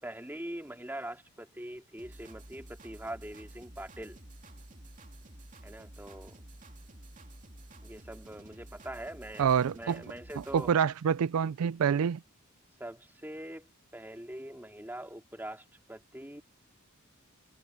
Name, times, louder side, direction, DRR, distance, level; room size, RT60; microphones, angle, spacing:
voice 1, 0.0-4.2 5.6-6.4 7.8-9.5 9.7-10.8 12.8-16.4, right 1 dB, 10° right, 2.6 m, -43 dB
sound 1, 2.0-10.7, right 1 dB, 35° right, 2.7 m, -51 dB
voice 2, 9.4-10.0 10.5-12.2, right 7 dB, 85° right, 0.4 m, -27 dB
head